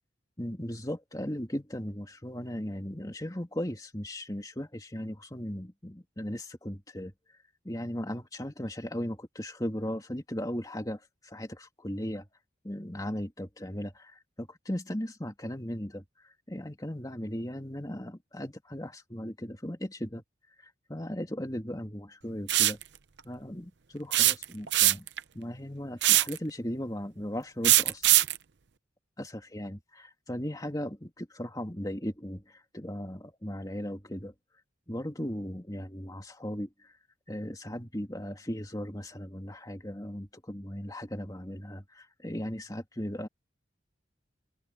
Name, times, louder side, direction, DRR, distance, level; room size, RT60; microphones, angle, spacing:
voice 1, 0.4-7.1 7.6-12.3 12.6-20.2 20.6-22.8 23.2-25.1 25.3-28.1 29.2-34.3 34.9-37.0 37.3-43.3, equal, 20° left, 2.8 m, -37 dB
sound 1, 22.5-22.8 24.1-25.2 26.0-26.4 27.6-28.4, right 15 dB, 65° right, 0.7 m, -21 dB
head